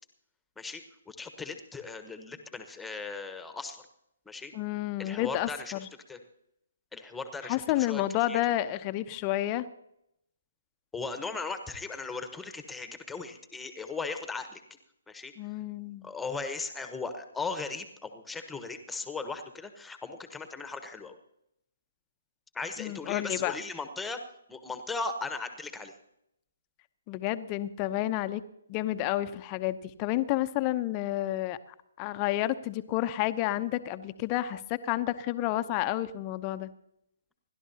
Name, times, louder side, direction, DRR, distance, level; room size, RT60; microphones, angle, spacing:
voice 1, 1.1-3.8 4.3-4.5 5.0-6.2 6.9-8.0 8.3-8.4 10.9-14.6 15.1-15.3 16.0-21.2 22.5-24.2 24.5-25.9, left 4 dB, 5° left, 7 dB, 1.2 m, -37 dB
voice 2, 4.5-5.9 7.4-9.7 15.4-16.1 22.8-23.6 27.1-28.4 28.7-31.6 32.0-36.7, left 14 dB, 25° left, 11 dB, 0.7 m, -30 dB
29.0 x 12.0 x 2.9 m, 0.79 s
figure-of-eight pair, 135°, 0 cm